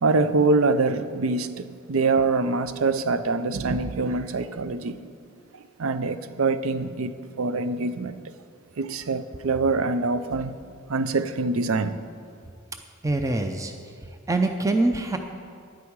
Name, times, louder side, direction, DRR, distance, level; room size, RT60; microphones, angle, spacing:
voice 1, 0.0-5.0 5.8-8.2 8.8-10.6 10.9-11.9, right 3 dB, 70° right, 0.6 m, -24 dB
voice 2, 13.0-13.7 14.3-15.2, right 2 dB, 15° right, 0.5 m, -24 dB
12.0 x 10.5 x 4.7 m
head